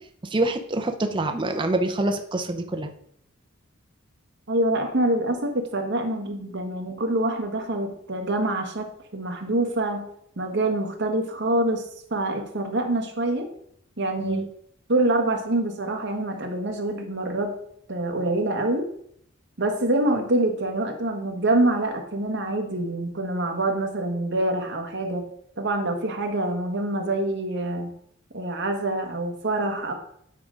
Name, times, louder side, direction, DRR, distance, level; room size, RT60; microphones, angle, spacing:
voice 1, 0.2-2.9 14.2-14.5, right 2 dB, 25° right, 5 dB, 0.6 m, -26 dB
voice 2, 4.5-10.0 10.4-11.8 12.1-13.5 14.0-14.4 14.9-17.5 17.9-18.8 19.6-25.3 25.6-27.9 28.3-29.9, right 1 dB, 55° right, 3 dB, 1.3 m, -25 dB
8.8 x 3.7 x 5.0 m, 0.69 s
head